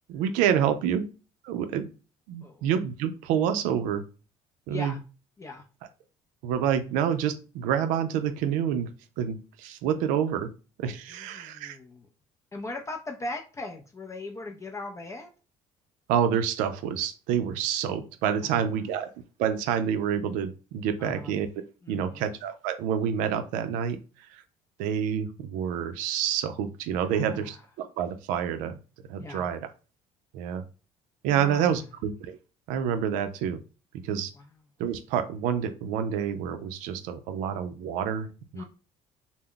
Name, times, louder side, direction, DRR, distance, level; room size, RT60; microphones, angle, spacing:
voice 1, 0.1-1.1 1.4-1.9 2.3-4.0 4.7-5.0 6.4-8.9 9.2-10.5 10.8-11.8 16.1-19.1 19.4-21.5 21.9-24.0 24.3-24.4 24.8-28.8 29.1-29.6 30.3-30.7 31.2-32.4 32.7-33.6 33.9-34.3 34.8-38.6, right 8 dB, 85° right, 9 dB, 0.4 m, -28 dB
voice 2, 4.7-5.0 5.4-5.7 11.1-12.1 12.5-15.3 18.4-18.8 21.0-21.3 21.8-22.3 27.0-27.6 29.2-29.5 31.3-31.9 34.4-34.5 38.5-38.6, left 2 dB, 20° left, 2 dB, 0.4 m, -39 dB
2.2 x 2.0 x 3.6 m, 0.34 s
supercardioid pair, 85°, 13 cm